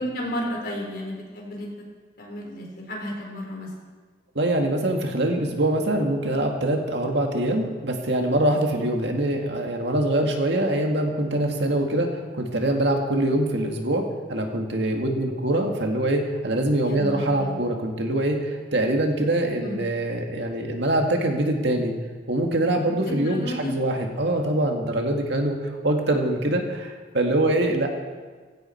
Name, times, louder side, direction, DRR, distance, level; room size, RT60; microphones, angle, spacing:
voice 1, 0.0-1.7 2.2-3.7 16.8-17.6 19.6-19.8 23.1-23.7, equal, 50° left, -1 dB, 4.5 m, -32 dB
voice 2, 4.4-21.9 22.3-25.6 25.8-27.9, right 1 dB, 65° right, 2 dB, 2.1 m, -24 dB
18.0 x 16.0 x 4.6 m, 1.4 s
head